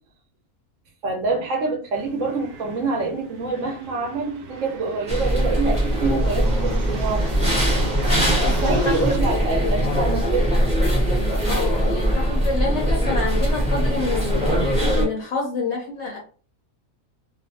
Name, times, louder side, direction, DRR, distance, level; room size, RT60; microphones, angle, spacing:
voice 1, 1.0-7.4 8.4-10.6, right 3 dB, 65° right, 0.9 m, -26 dB
sound 1, 1.9-9.2, right 3 dB, 85° right, 1.2 m, -36 dB
sound 2, 5.1-15.0, equal, 5° right, 0.6 m, -21 dB
voice 2, 8.3-9.1 9.6-9.8 11.5-16.2, left 4 dB, 60° left, 0.7 m, -28 dB
2.5 x 2.3 x 2.6 m
omnidirectional pair, 1.6 m